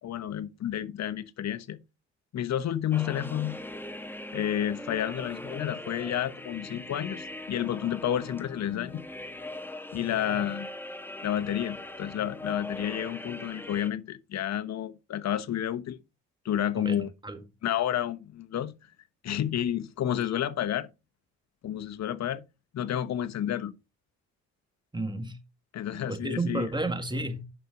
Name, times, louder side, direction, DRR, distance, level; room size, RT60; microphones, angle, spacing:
voice 1, 0.0-1.8 2.3-3.6 4.3-9.0 9.9-10.7 11.2-16.0 16.4-17.1 17.6-18.7 19.2-20.9 21.6-22.4 22.7-23.7 25.7-26.7, left 10 dB, 60° left, 1.1 m, -30 dB
sound 1, 2.9-13.9, left 1 dB, 5° left, 1.1 m, -41 dB
voice 2, 16.8-17.4 24.9-25.4 25.9-27.4, right 2 dB, 15° right, 1.8 m, -32 dB
10.5 x 6.0 x 3.9 m
cardioid pair, 90°, 30 cm